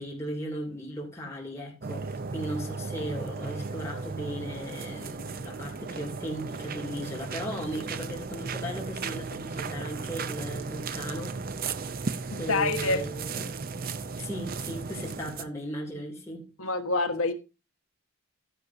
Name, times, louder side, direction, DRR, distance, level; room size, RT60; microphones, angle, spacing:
voice 1, 0.0-11.5 12.0-13.5 14.2-16.5, equal, 10° left, 2.7 m, -37 dB
sound 1, 1.8-15.5, right 4 dB, 40° right, 0.5 m, -35 dB
voice 2, 12.3-13.0 16.6-17.3, left 3 dB, 70° left, 1.3 m, -27 dB
12.5 x 10.0 x 2.7 m
head